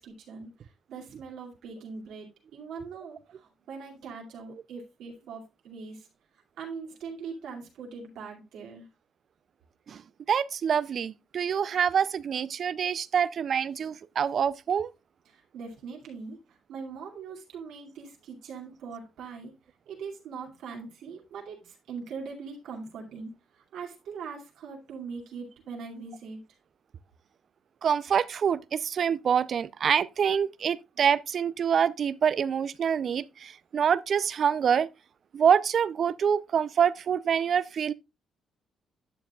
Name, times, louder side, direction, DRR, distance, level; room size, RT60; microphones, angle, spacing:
voice 1, 0.0-6.1 6.6-8.9 15.3-19.5 19.9-26.4, right 5 dB, 85° right, 2.5 m, -41 dB
voice 2, 10.3-14.9 27.8-34.9 35.3-37.9, right 7 dB, 55° right, 0.4 m, -26 dB
11.5 x 6.8 x 2.3 m
cardioid pair, 90°, 0 cm